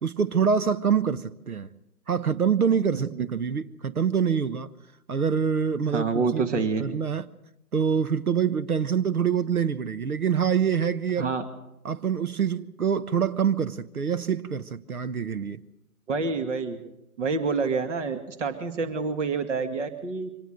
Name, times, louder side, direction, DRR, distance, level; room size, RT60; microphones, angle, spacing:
voice 1, 0.0-1.7 2.1-4.7 5.1-7.2 7.7-11.3 11.8-15.6, right 7 dB, 75° right, 1.1 m, -25 dB
voice 2, 2.9-3.3 5.9-6.9 11.2-11.5 16.1-16.8 17.2-20.3, right 4 dB, 55° right, 2.2 m, -27 dB
24.5 x 18.5 x 6.7 m
figure-of-eight pair, 130°, 44 cm